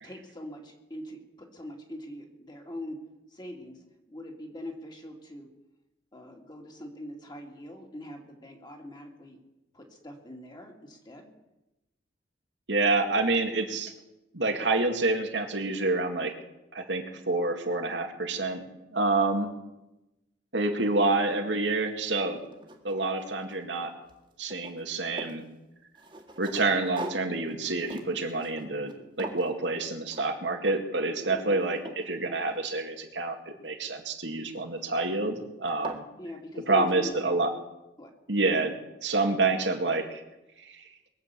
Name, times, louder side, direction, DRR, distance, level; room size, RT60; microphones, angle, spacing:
voice 1, 0.0-3.0 3.3-5.5 6.1-9.4 9.7-11.3 31.3-31.7 36.2-37.3 38.0-38.1, left 1 dB, 25° left, 2 dB, 2.5 m, -42 dB
voice 2, 12.7-13.9 14.3-16.3 16.7-18.6 18.9-19.5 20.5-22.4 22.8-23.9 24.4-25.5 26.4-28.9 29.2-36.0 36.7-37.5 38.3-38.7 39.0-40.2 40.6-40.8, right 3 dB, 75° right, 3 dB, 2.1 m, -28 dB
sound 1, 21.8-21.9 22.3-23.8 24.1-25.4 25.9-28.9 29.2-29.5 30.1-30.3 30.6-31.0 31.4-33.0 34.5-34.9 35.3-35.4 35.7-36.1, right 2 dB, 30° right, 1.9 m, -43 dB
21.5 x 7.3 x 8.4 m, 0.97 s
head